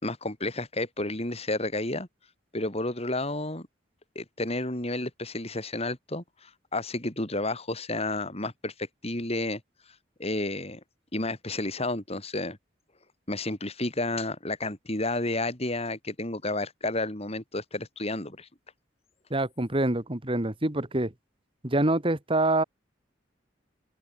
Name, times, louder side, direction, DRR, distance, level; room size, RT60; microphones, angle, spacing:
voice 1, 0.0-2.1 2.5-3.7 4.1-9.6 10.2-10.8 11.1-12.6 13.3-18.5, left 2 dB, 35° left, 4.6 m, -31 dB
voice 2, 19.3-21.1 21.6-22.6, right 2 dB, 30° right, 1.9 m, -26 dB
open air
head